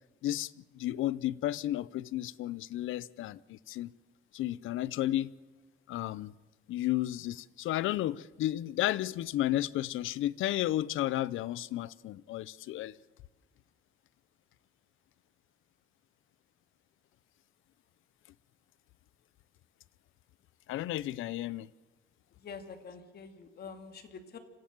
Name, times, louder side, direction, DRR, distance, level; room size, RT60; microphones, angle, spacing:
voice 1, 0.2-3.9 4.3-5.3 5.9-6.3 6.7-13.0 20.7-21.7, left 14 dB, 85° left, 0.6 m, -33 dB
voice 2, 22.3-24.4, left 5 dB, 55° left, 2.4 m, -46 dB
25.5 x 16.0 x 7.5 m
cardioid pair, 135°, 20 cm